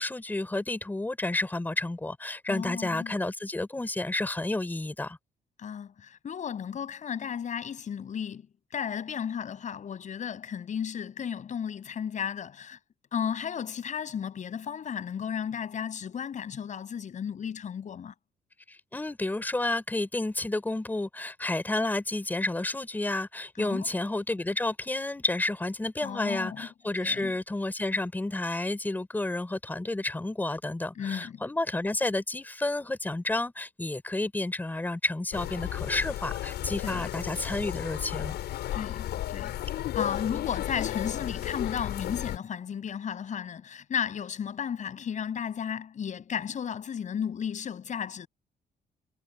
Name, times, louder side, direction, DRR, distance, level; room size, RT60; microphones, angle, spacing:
voice 1, 0.0-5.2 18.7-38.4, left 2 dB, 10° left, 3.7 m, -31 dB
voice 2, 2.5-3.1 5.6-8.5 8.7-12.8 13.1-18.1 23.6-23.9 26.0-26.7 27.0-27.3 31.0-31.4 36.8-37.1 38.7-39.6 39.9-48.3, left 8 dB, 45° left, 6.6 m, -34 dB
sound 1, 35.3-42.4, left 13 dB, 90° left, 6.5 m, -34 dB
cardioid pair, 140°, 17 cm